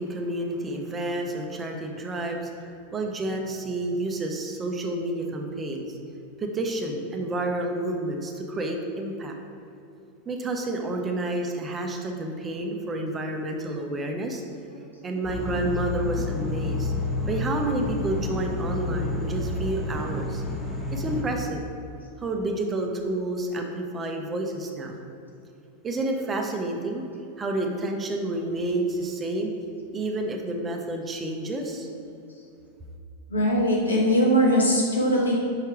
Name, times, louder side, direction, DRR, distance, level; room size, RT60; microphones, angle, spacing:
voice 1, 0.0-6.0 6.4-9.3 10.3-14.4 15.0-16.9 17.3-20.4 20.9-21.7 22.2-25.0 25.8-27.0 27.4-29.5 29.9-31.9, right 2 dB, 20° right, 2 dB, 0.7 m, -29 dB
sound 1, 15.2-21.2, left 2 dB, ahead, 1.2 m, -29 dB
voice 2, 33.3-35.3, equal, 80° left, -4 dB, 1.5 m, -21 dB
5.7 x 4.5 x 4.6 m, 2.6 s
figure-of-eight pair, 90°, 0 cm